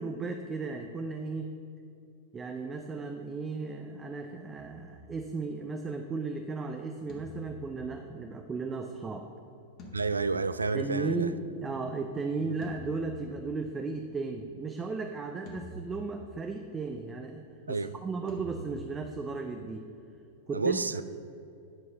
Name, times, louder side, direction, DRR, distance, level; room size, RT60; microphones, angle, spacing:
voice 1, 0.0-1.5 2.3-9.3 10.7-19.9 20.5-20.8, right 4 dB, 20° right, 0.5 m, -35 dB
sound 1, 4.6-5.9 7.1-8.8 9.8-11.1 12.6-14.0 15.5-16.6 18.3-19.7, left 1 dB, 40° left, 1.7 m, -48 dB
voice 2, 9.9-11.3 12.4-12.6 17.7-17.9 20.5-21.0, right 4 dB, 85° right, 0.3 m, -30 dB
10.5 x 4.7 x 5.4 m
figure-of-eight pair, 95°, 0 cm